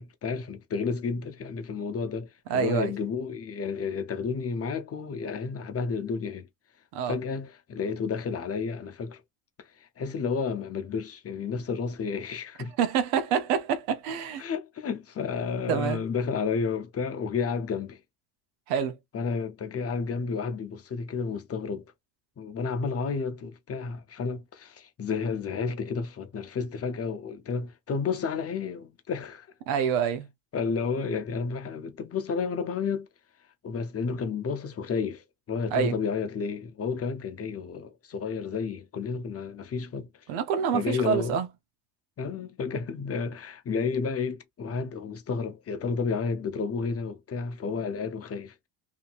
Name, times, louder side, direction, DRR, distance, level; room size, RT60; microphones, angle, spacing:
voice 1, 0.0-6.5 7.0-9.2 9.6-12.7 14.4-18.0 19.1-21.9 22.4-29.5 30.5-33.1 33.6-40.1 40.7-41.4 42.2-48.5, left 5 dB, 30° left, 0.7 m, -31 dB
voice 2, 2.5-2.9 6.9-7.2 12.8-14.4 15.7-16.1 18.7-19.0 29.7-30.3 35.7-36.0 40.3-41.5, right 7 dB, 90° right, 0.9 m, -27 dB
2.8 x 2.7 x 2.4 m
cardioid pair, 105°, 48 cm